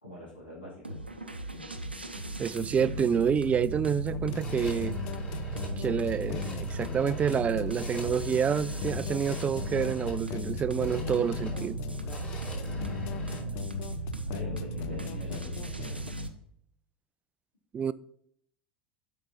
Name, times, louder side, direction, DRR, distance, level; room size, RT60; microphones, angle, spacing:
voice 1, 0.0-1.0 12.5-13.7 13.9-16.0, equal, 80° left, 3.2 m, -46 dB
sound 1, 0.8-16.3, right 1 dB, 85° right, 0.6 m, -36 dB
sound 2, 2.1-13.4, left 2 dB, 25° left, 3.4 m, -46 dB
voice 2, 2.4-5.0 5.8-11.8 17.7-17.9, right 7 dB, 25° right, 0.3 m, -28 dB
sound 3, 4.1-16.1, left 14 dB, 50° left, 0.4 m, -40 dB
7.7 x 5.3 x 4.2 m
figure-of-eight pair, 75°, 5 cm